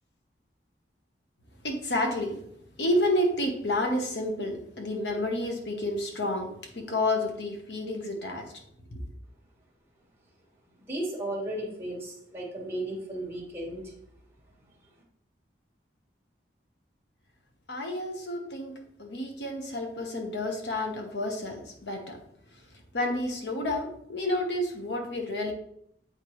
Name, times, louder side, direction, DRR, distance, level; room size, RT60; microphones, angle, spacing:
voice 1, 1.6-2.4 2.8-8.5 17.7-22.2 22.9-25.5, left 1 dB, 70° left, 3 dB, 1.1 m, -30 dB
voice 2, 10.8-13.9, right 1 dB, 15° right, -3 dB, 1.4 m, -35 dB
8.1 x 4.4 x 3.1 m, 0.70 s
head